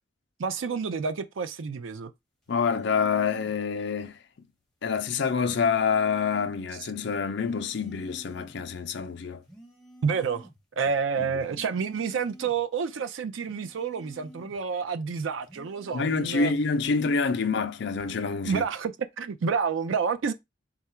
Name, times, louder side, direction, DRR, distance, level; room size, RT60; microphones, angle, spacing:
voice 1, 0.4-2.1 10.0-10.5 10.8-16.5 18.4-20.3, right 5 dB, 75° right, 0.4 m, -29 dB
sound 1, 2.4-3.6 5.5-6.6 7.5-8.6 9.4-10.6 11.4-12.6 13.4-14.6 15.4-16.6 17.4-17.8, equal, ahead, 1.2 m, -50 dB
voice 2, 2.5-4.2 4.8-9.4 11.2-11.3 15.9-18.6, left 5 dB, 60° left, 0.5 m, -27 dB
3.8 x 2.4 x 4.3 m
head